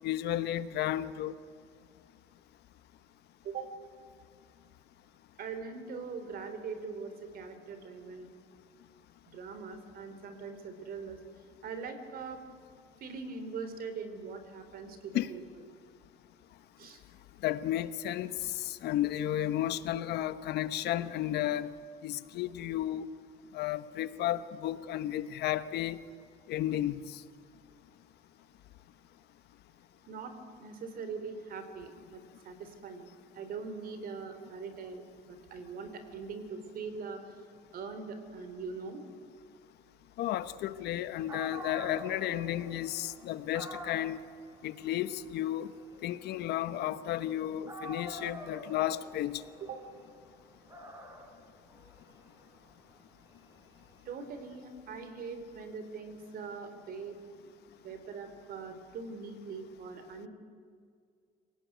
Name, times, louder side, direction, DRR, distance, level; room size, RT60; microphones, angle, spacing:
voice 1, 0.0-1.3 15.1-15.3 17.4-21.7 22.0-23.1 23.5-26.0 26.5-27.2 40.2-44.2 44.6-45.7 46.0-49.4, left 12 dB, 75° left, 13 dB, 1.1 m, -33 dB
voice 2, 5.4-8.3 9.3-11.2 11.6-12.4 13.0-15.4 16.8-17.0 30.1-33.1 33.3-37.4 37.7-39.0 49.7-49.8 54.1-57.2 57.8-60.3, right 5 dB, 60° right, 9 dB, 3.7 m, -42 dB
Dog, 41.3-47.3 47.7-54.4, equal, 20° right, 4.0 m, -47 dB
26.5 x 18.0 x 9.3 m, 2.1 s
cardioid pair, 110°, 17 cm